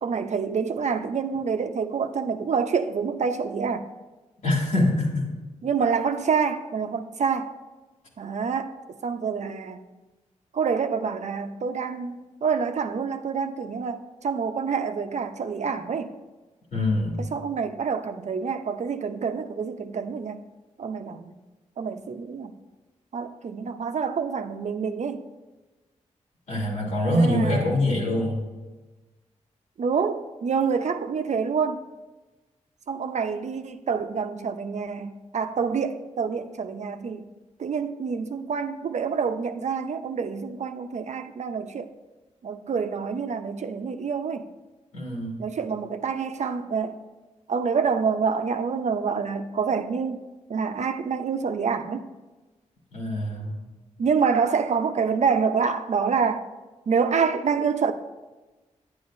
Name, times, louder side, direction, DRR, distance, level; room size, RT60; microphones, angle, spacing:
voice 1, 0.0-3.9 5.6-7.5 8.2-9.8 10.5-16.1 17.2-20.4 20.8-21.3 21.8-22.6 23.1-25.2 27.1-27.8 29.8-31.8 32.9-37.3 37.6-41.9 42.4-44.5 45.4-47.0 47.5-52.1 54.0-56.5 56.9-57.9, right 6 dB, 60° right, 0.6 m, -27 dB
voice 2, 4.4-5.3 16.7-17.2 26.5-28.4 44.9-45.4 52.9-53.6, left 1 dB, 85° left, 3.0 m, -24 dB
10.5 x 9.2 x 2.6 m
cardioid pair, 55°, 13 cm